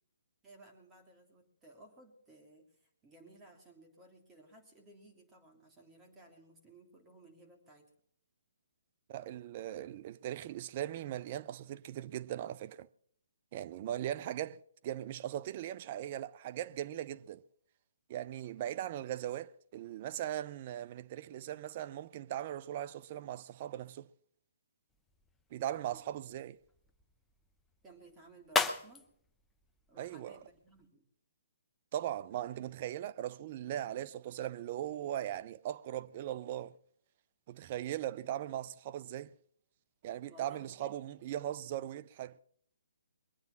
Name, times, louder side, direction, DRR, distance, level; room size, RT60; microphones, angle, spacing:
voice 1, 0.4-7.9 27.8-29.1 29.9-31.1 40.3-40.9, right 2 dB, 15° right, 3.1 m, -58 dB
voice 2, 9.1-12.9 13.5-17.4 18.1-24.1 25.5-26.6 30.0-30.4 31.9-36.7 37.5-39.3 40.0-42.4, right 12 dB, 40° right, 0.5 m, -39 dB
sound 1, 24.9-30.9, left 4 dB, 10° left, 0.7 m, -40 dB
22.0 x 9.4 x 5.9 m
hypercardioid pair, 140°, 0 cm